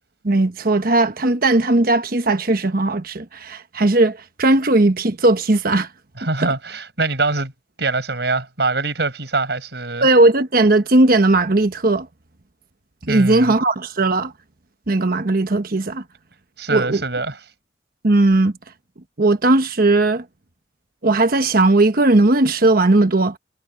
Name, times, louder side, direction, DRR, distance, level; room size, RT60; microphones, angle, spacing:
voice 1, 0.2-5.9 6.4-6.5 10.0-12.1 13.0-14.3 14.9-16.0 16.7-17.0 18.0-18.5 19.2-20.2 21.0-23.4, right 2 dB, 55° right, 1.2 m, -17 dB
voice 2, 6.2-7.5 7.8-10.1 13.1-13.6 16.6-17.4, right 3 dB, 75° right, 6.0 m, -23 dB
head